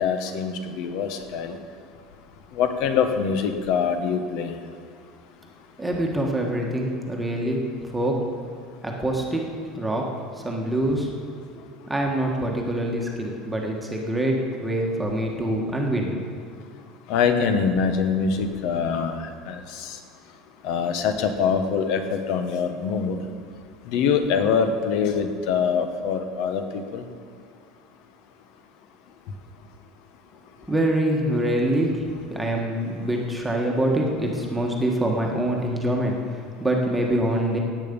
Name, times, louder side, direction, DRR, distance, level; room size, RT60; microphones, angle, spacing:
voice 1, 0.0-1.6 2.5-4.5 17.1-19.2 19.5-19.9 20.6-23.2 23.9-27.0, left 6 dB, 55° left, 7 dB, 1.2 m, -24 dB
voice 2, 5.8-8.2 8.8-9.4 9.7-10.1 10.3-11.1 11.9-16.1 30.7-37.6, right 1 dB, 5° right, -1 dB, 1.4 m, -25 dB
16.5 x 9.0 x 5.3 m, 2.2 s
cardioid pair, 165°, 0 cm